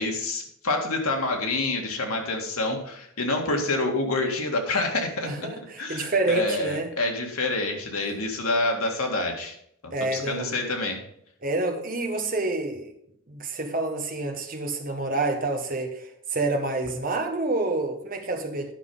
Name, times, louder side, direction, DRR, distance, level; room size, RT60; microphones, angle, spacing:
voice 1, 0.0-9.6 9.8-11.0, left 2 dB, 85° left, 2.0 m, -27 dB
voice 2, 5.2-6.9 9.9-10.5 11.4-12.9 13.3-18.7, right 2 dB, 40° right, 1.2 m, -28 dB
10.0 x 5.9 x 5.5 m
head